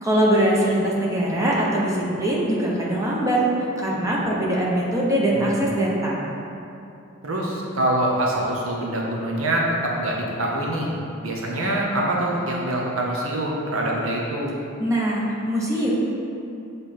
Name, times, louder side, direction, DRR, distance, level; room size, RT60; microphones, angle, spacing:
voice 1, 0.0-3.4 3.8-6.3 14.8-15.9, right 1 dB, 15° right, -5 dB, 1.0 m, -22 dB
voice 2, 7.2-10.9 11.2-14.5, right 1 dB, 75° right, -2 dB, 0.9 m, -25 dB
7.7 x 3.4 x 4.3 m, 2.7 s
head